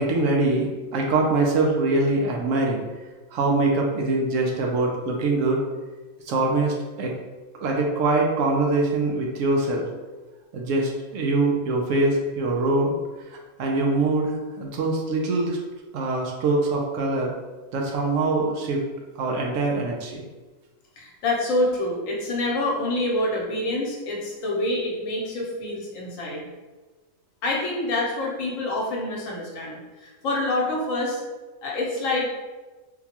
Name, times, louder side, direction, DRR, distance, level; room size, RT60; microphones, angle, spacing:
voice 1, 0.0-2.8 3.3-5.6 6.3-7.1 7.5-9.9 10.5-12.9 13.6-15.6 15.9-17.3 17.7-18.8 19.2-20.2, right 2 dB, 70° right, 0 dB, 0.9 m, -23 dB
voice 2, 21.0-26.5 27.4-31.2 31.6-32.3, left 2 dB, 70° left, -2 dB, 1.1 m, -26 dB
3.8 x 2.2 x 2.9 m, 1.2 s
omnidirectional pair, 1.5 m